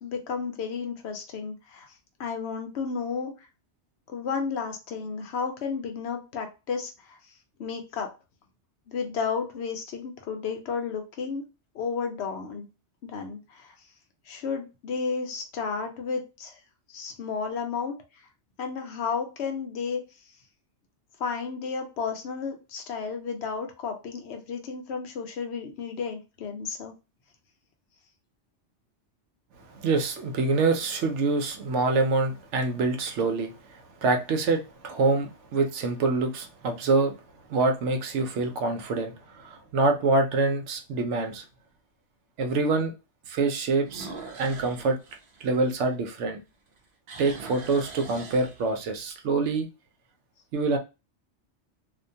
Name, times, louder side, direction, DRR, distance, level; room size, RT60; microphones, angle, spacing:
voice 1, 0.0-1.9 2.2-3.3 4.1-7.2 7.6-8.1 8.9-11.4 11.7-12.7 13.0-13.7 14.3-16.6 16.9-17.9 18.6-20.0 21.2-26.9, left 5 dB, 70° left, 0.9 m, -32 dB
voice 2, 29.7-37.1 37.5-41.4 42.4-42.9 43.3-44.1 44.4-45.0 45.4-46.4 47.2-49.7 50.5-50.8, right 3 dB, 80° right, 0.9 m, -26 dB
sound 1, 30.1-30.8 31.5-31.6 36.8-37.3 37.7-37.8 38.4-38.5 38.8-38.9 40.4-40.5 43.8-46.3 46.7-49.0, right 4 dB, 60° right, 0.7 m, -43 dB
2.4 x 2.2 x 2.6 m
omnidirectional pair, 1.2 m